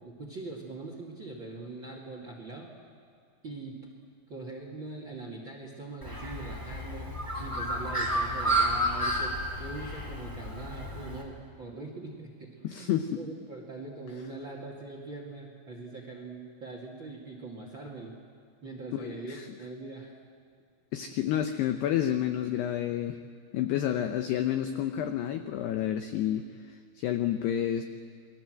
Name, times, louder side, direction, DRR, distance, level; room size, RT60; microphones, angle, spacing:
voice 1, 0.0-2.7 3.4-3.8 4.3-7.1 7.4-18.1 18.6-20.1, right 3 dB, 45° right, 1 dB, 1.6 m, -42 dB
Bird, 6.0-11.2, right 1 dB, 5° left, 2.3 m, -31 dB
voice 2, 12.6-13.2 18.9-19.5 20.9-23.2 23.5-27.8, left 11 dB, 85° left, 8 dB, 2.3 m, -30 dB
29.0 x 21.5 x 7.8 m, 2.2 s
omnidirectional pair, 6.0 m